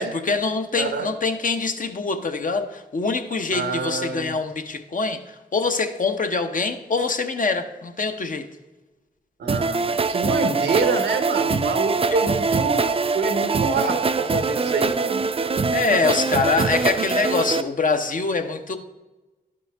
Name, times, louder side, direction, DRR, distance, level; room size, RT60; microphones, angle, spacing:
voice 1, 0.0-8.5 12.1-12.2 15.7-18.8, left 4 dB, 50° left, 0.8 m, -24 dB
voice 2, 0.8-1.1 3.5-4.3 9.4-15.2, right 4 dB, 85° right, 0.8 m, -27 dB
sound 1, 9.5-17.6, right 4 dB, 35° right, 0.4 m, -23 dB
11.0 x 5.2 x 3.4 m
cardioid pair, 45°, 17 cm